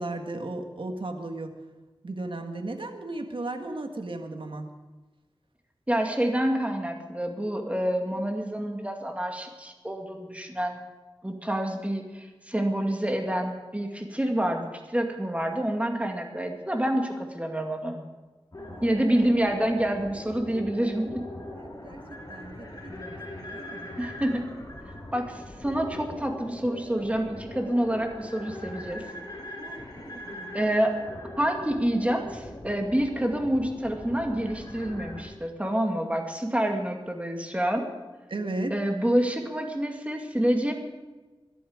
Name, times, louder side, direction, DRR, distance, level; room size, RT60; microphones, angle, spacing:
voice 1, 0.0-1.5 2.0-4.7 18.6-18.8 21.8-22.0 22.3-23.9 29.6-30.5 38.3-38.7, right 2 dB, 65° right, 5 dB, 1.8 m, -35 dB
voice 2, 5.9-10.8 11.2-18.0 18.8-21.2 24.0-24.5 25.1-29.0 30.5-30.9 31.4-37.9 38.7-40.7, right 1 dB, 15° right, 3 dB, 2.4 m, -27 dB
sound 1, 18.5-35.2, left 1 dB, 40° left, 4.9 m, -41 dB
22.0 x 11.5 x 5.2 m, 1.2 s
wide cardioid pair, 75°, 9 cm